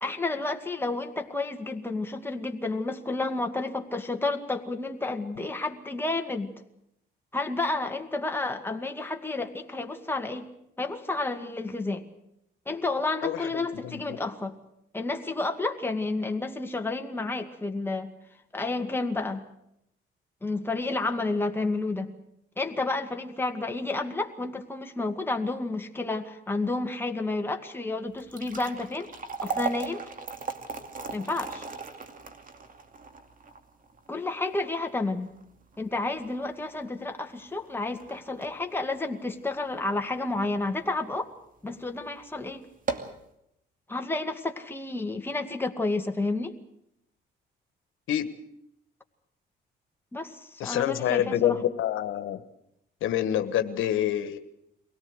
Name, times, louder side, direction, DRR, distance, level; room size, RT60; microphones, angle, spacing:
voice 1, 0.0-6.5 7.3-10.5 10.8-12.1 12.7-14.6 14.9-18.1 18.5-19.4 20.4-22.1 22.6-29.1 29.4-30.0 31.1-31.7 34.1-35.3 35.8-41.3 41.6-42.7 43.9-46.5 50.1-51.6, left 2 dB, 10° left, 4 dB, 2.1 m, -31 dB
voice 2, 13.2-14.2 48.1-48.3 50.6-52.4 53.0-54.4, left 11 dB, 80° left, 9 dB, 1.4 m, -27 dB
sound 1, 28.1-40.4 40.8-40.9 41.6-41.8 42.1-42.2 42.7-43.2, right 4 dB, 45° right, 2.5 m, -38 dB
23.0 x 18.0 x 8.0 m, 0.78 s
cardioid pair, 90°, 20 cm